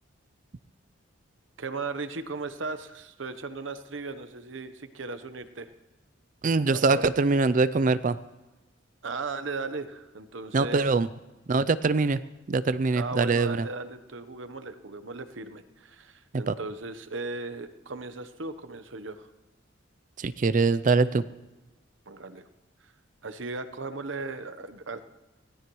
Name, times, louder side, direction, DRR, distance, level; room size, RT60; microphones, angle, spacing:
voice 1, 1.6-5.7 6.7-7.0 9.0-10.8 12.9-19.3 22.1-22.5 22.8-22.9 23.2-25.0, right 3 dB, 70° right, 11 dB, 1.0 m, -37 dB
voice 2, 6.4-8.2 10.5-11.1 11.5-12.2 12.5-13.7 16.3-16.5 20.2-21.2, right 3 dB, 40° right, 15 dB, 0.4 m, -23 dB
24.0 x 17.0 x 3.1 m, 1.1 s
head